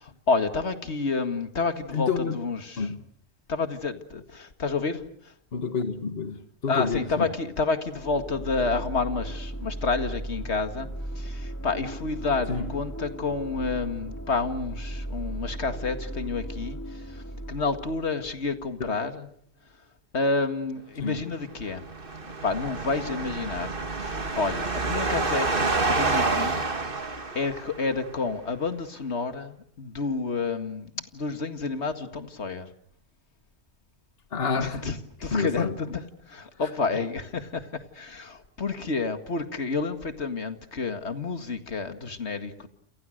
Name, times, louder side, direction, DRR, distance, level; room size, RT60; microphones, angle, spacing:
voice 1, 0.0-2.9 3.5-5.3 6.7-10.9 11.2-19.3 20.1-21.9 22.4-23.7 24.0-26.7 27.0-32.7 34.6-36.0 36.3-42.7, left 4 dB, 85° left, 8 dB, 2.3 m, -30 dB
voice 2, 1.9-2.4 2.8-3.0 5.5-7.3 12.5-12.7 18.8-18.9 21.0-21.2 34.3-35.8 36.6-36.7, left 5 dB, 65° left, 9 dB, 1.8 m, -29 dB
sound 1, 7.9-18.7, right 1 dB, 15° left, 3.0 m, -37 dB
sound 2, 21.6-27.9, right 3 dB, 55° right, 2.1 m, -28 dB
29.0 x 28.5 x 6.6 m, 0.63 s
omnidirectional pair, 1.1 m